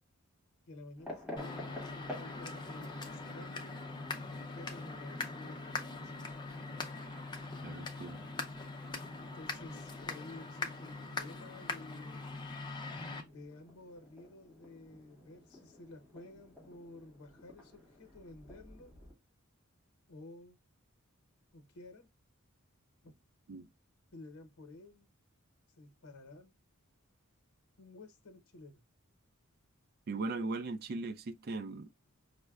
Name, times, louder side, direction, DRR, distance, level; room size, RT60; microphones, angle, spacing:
voice 1, 0.7-3.8 4.3-6.2 9.2-12.2 13.2-18.9 20.1-20.6 21.5-22.1 23.0-23.1 24.1-25.1 25.7-26.5 27.8-28.8, left 2 dB, 90° left, 0.8 m, -52 dB
sound 1, 1.0-19.1, left 1 dB, 5° right, 1.6 m, -53 dB
sound 2, 1.4-13.2, left 3 dB, 20° left, 0.5 m, -42 dB
voice 2, 7.6-8.3 23.5-23.7 30.1-31.9, right 3 dB, 45° right, 0.4 m, -38 dB
5.3 x 2.1 x 2.3 m
head